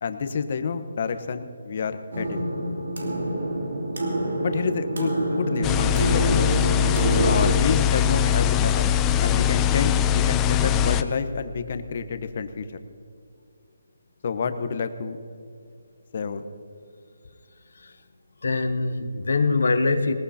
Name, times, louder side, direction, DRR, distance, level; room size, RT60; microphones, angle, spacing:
voice 1, 0.0-2.4 4.4-6.5 7.2-8.9 9.2-12.7 14.2-15.2 16.1-16.4, left 5 dB, 45° left, 9 dB, 1.0 m, -29 dB
sound 1, 2.1-7.5, right 1 dB, 85° right, 3.0 m, -26 dB
sound 2, 5.6-11.0, left 10 dB, 15° left, 0.4 m, -21 dB
voice 2, 18.4-20.1, left 3 dB, 70° left, 7 dB, 1.0 m, -23 dB
20.0 x 19.5 x 2.9 m, 2.4 s
hypercardioid pair, 165°, 0 cm